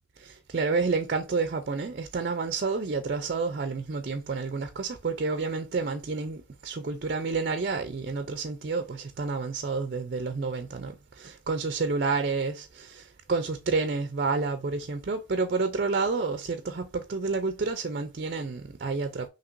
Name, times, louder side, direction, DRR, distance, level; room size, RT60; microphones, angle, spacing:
voice 1, 0.2-19.3, right 4 dB, 50° right, 0.5 m, -29 dB
5.8 x 2.9 x 2.5 m
head